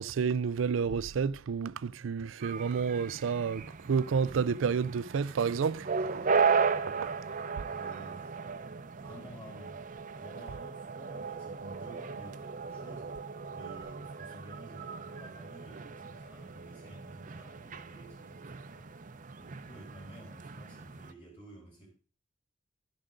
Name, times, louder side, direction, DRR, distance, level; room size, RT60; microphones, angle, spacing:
voice 1, 0.0-6.6 6.9-7.1, right 6 dB, 80° right, 0.4 m, -30 dB
sound 1, 2.4-21.1, right 5 dB, 45° right, 0.7 m, -36 dB
voice 2, 7.7-8.5 9.0-13.2 13.5-18.9 19.4-21.9, right 1 dB, 30° left, 4.5 m, -52 dB
12.0 x 10.0 x 3.8 m
head